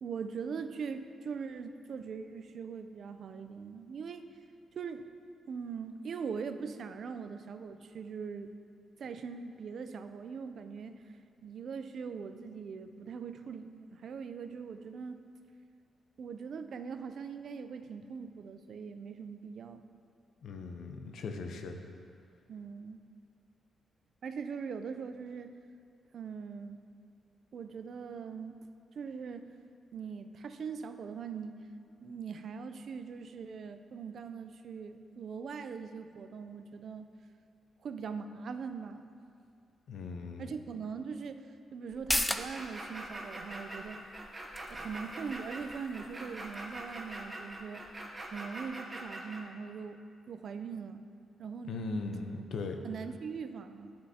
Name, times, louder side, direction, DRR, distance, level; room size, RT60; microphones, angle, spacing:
voice 1, 0.0-4.3 4.8-5.1 5.5-8.5 9.0-11.0 11.4-15.2 16.2-19.8 22.5-23.0 24.2-25.6 26.1-26.8 27.5-28.5 29.0-29.5 29.9-31.7 32.0-37.1 37.8-39.0 40.4-44.1 44.7-47.9 48.3-51.0 51.4-51.7 52.8-54.0, right 5 dB, 60° right, 9 dB, 0.4 m, -41 dB
voice 2, 20.4-21.8 39.9-40.5 51.6-52.8, left 3 dB, 75° left, 5 dB, 0.7 m, -38 dB
sound 1, 41.9-49.0 49.4-49.5, left 1 dB, 10° left, 0.3 m, -40 dB
sound 2, 42.3-49.4, right 1 dB, 20° right, 0.8 m, -43 dB
11.5 x 6.5 x 2.8 m, 2.4 s
cardioid pair, 115°, 0 cm